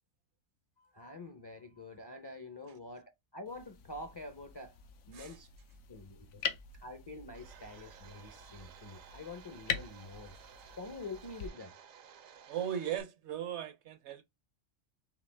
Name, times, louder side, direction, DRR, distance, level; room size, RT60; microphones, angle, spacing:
voice 1, 0.8-4.8 5.1-5.5 5.9-6.4 6.7-10.3 10.8-11.7, left 2 dB, 35° left, 0.4 m, -46 dB
sound 1, 3.5-11.5, left 7 dB, 85° left, 1.1 m, -44 dB
Domestic sounds home sounds, 7.3-13.0, right 8 dB, 80° right, 1.1 m, -56 dB
voice 2, 12.5-14.3, right 9 dB, 65° right, 0.8 m, -37 dB
5.0 x 2.9 x 3.3 m
omnidirectional pair, 1.4 m